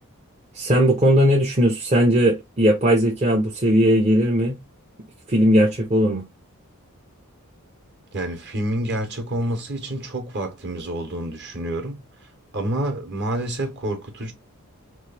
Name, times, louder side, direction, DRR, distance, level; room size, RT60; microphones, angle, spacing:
voice 1, 0.5-4.6 5.3-6.2, equal, 30° right, 0.7 m, -18 dB
voice 2, 8.1-14.3, right 1 dB, 50° right, 1.1 m, -28 dB
3.1 x 2.5 x 3.3 m
head